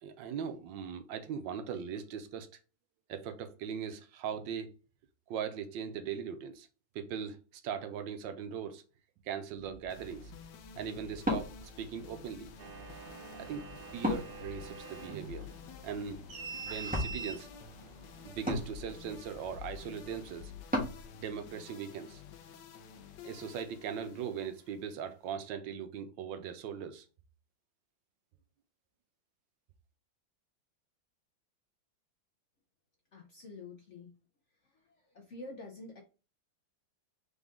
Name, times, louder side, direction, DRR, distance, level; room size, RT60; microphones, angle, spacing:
voice 1, 0.0-2.6 3.1-4.7 5.3-6.7 6.9-8.8 9.2-10.3 10.8-12.5 13.4-13.6 13.9-15.5 15.8-16.2 16.6-17.5 18.2-20.5 21.1-22.2 23.2-27.1, right 7 dB, 80° right, 1.4 m, -39 dB
Wood, 9.5-21.0, left 1 dB, 5° right, 1.1 m, -40 dB
sound 1, 9.9-25.3, left 7 dB, 70° left, 1.3 m, -51 dB
sound 2, 12.6-18.9, right 4 dB, 60° right, 1.5 m, -46 dB
voice 2, 33.1-34.1 35.1-36.0, left 2 dB, 55° left, 0.8 m, -47 dB
3.9 x 3.8 x 3.6 m
omnidirectional pair, 2.1 m